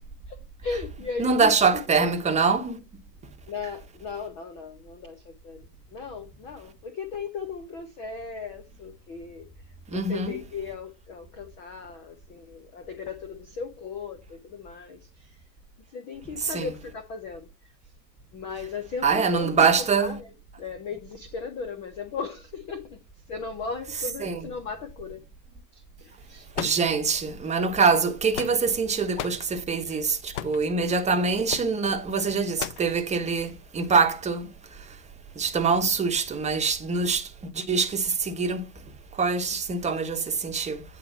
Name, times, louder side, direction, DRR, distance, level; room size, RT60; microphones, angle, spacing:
voice 1, 0.3-2.1 3.5-9.5 9.9-15.4 15.9-17.5 18.3-23.0 23.3-25.2 25.7-26.7 29.8-30.0, left 5 dB, 15° left, 0.4 m, -37 dB
voice 2, 1.2-2.8 9.9-10.3 16.4-16.7 19.0-20.2 24.2-24.4 26.6-34.5 35.4-37.3 37.5-38.7 39.1-40.8, right 5 dB, 15° right, 1.0 m, -24 dB
sound 1, 26.5-27.3 28.0-28.8 29.2-29.5 30.3-30.7 31.5-31.7 32.6-32.9, left 11 dB, 45° left, 0.7 m, -34 dB
9.0 x 4.4 x 4.3 m
figure-of-eight pair, 100°, 50 cm